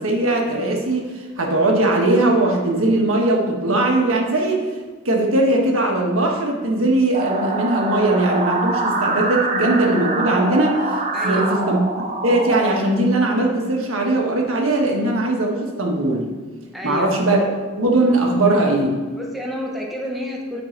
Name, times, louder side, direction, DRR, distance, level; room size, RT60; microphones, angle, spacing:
voice 1, 0.0-4.6 5.0-11.8 12.2-16.3 16.8-17.5 17.8-19.0, right 2 dB, 70° right, 0 dB, 1.3 m, -19 dB
sound 1, 7.1-12.7, right 2 dB, 35° right, 0.8 m, -24 dB
voice 2, 11.1-11.6 16.7-17.1 19.2-20.6, equal, ahead, -2 dB, 0.8 m, -29 dB
8.4 x 5.4 x 4.5 m, 1.4 s
head